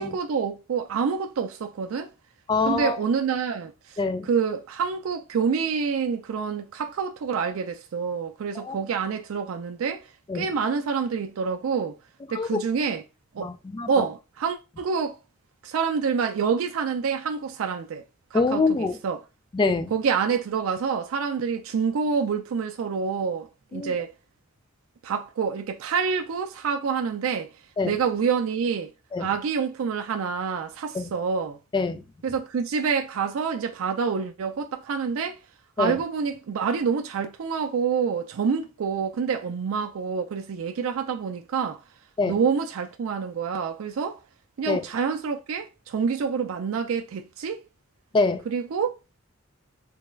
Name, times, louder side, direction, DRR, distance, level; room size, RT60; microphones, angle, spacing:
voice 1, 0.0-2.1 2.7-4.0 4.3-10.1 10.3-12.0 12.3-13.0 13.3-13.5 13.9-15.2 15.6-18.0 18.3-19.2 19.9-24.1 25.0-27.5 27.8-28.9 29.2-31.6 32.2-35.4 35.8-41.8 42.3-44.2 44.6-47.6 48.5-48.9, right 6 dB, 85° right, 0.4 m, -27 dB
voice 2, 2.5-3.0 4.0-4.3 8.5-8.8 10.3-10.5 12.3-12.6 13.4-14.0 18.3-19.0 19.5-19.9 23.7-23.9 27.8-28.0 29.1-29.3 30.9-31.1 31.7-32.0 35.8-36.0 42.2-42.4 44.7-44.9 48.1-48.5, left 3 dB, 25° left, 0.3 m, -25 dB
3.3 x 2.2 x 3.1 m
head